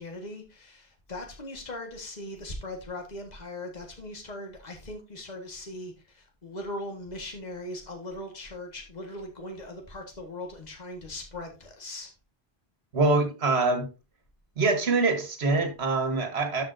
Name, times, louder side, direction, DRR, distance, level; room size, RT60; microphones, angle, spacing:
voice 1, 0.0-12.1, left 1 dB, 45° left, 1.8 m, -39 dB
voice 2, 12.9-13.8 14.6-16.6, right 3 dB, 85° right, 1.7 m, -24 dB
13.0 x 5.2 x 2.6 m
omnidirectional pair, 1.0 m